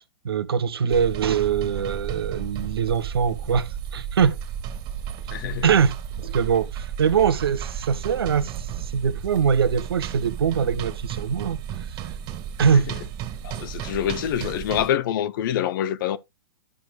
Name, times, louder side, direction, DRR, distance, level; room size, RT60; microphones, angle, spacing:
voice 1, 0.0-4.4 5.6-11.6 12.6-12.9, right 7 dB, 80° right, 1.0 m, -23 dB
sound 1, 0.9-14.9, right 9 dB, 40° right, 2.4 m, -33 dB
voice 2, 5.3-5.7 12.7-12.9 13.4-16.2, left 10 dB, 60° left, 0.9 m, -26 dB
13.5 x 6.2 x 2.3 m
hypercardioid pair, 110°, 13 cm